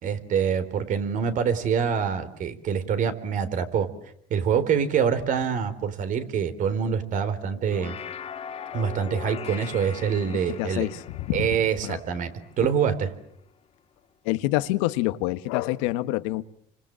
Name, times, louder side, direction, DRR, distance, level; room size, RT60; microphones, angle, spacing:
voice 1, 0.0-3.9 4.3-8.0 8.7-10.8 11.3-12.3 12.6-13.1, right 7 dB, 55° right, 3.8 m, -25 dB
sound 1, 7.5-13.1, left 8 dB, 40° left, 2.6 m, -40 dB
voice 2, 10.3-11.5 11.8-12.0 14.2-16.4, left 17 dB, 85° left, 1.4 m, -27 dB
30.0 x 25.5 x 7.6 m
supercardioid pair, 105°, 16 cm